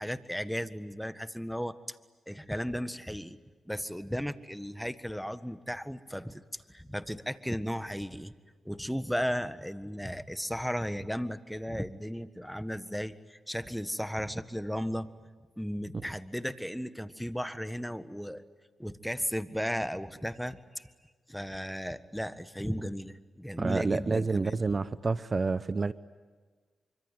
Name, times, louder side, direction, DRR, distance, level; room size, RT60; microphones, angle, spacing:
voice 1, 0.0-2.0 2.3-3.4 3.7-8.3 8.6-15.1 15.6-18.4 18.8-20.9 21.3-24.6, equal, ahead, 12 dB, 1.6 m, -35 dB
voice 2, 23.6-25.9, right 4 dB, 45° right, 15 dB, 0.8 m, -29 dB
25.5 x 25.0 x 9.4 m, 1.4 s
cardioid pair, 55°, 0 cm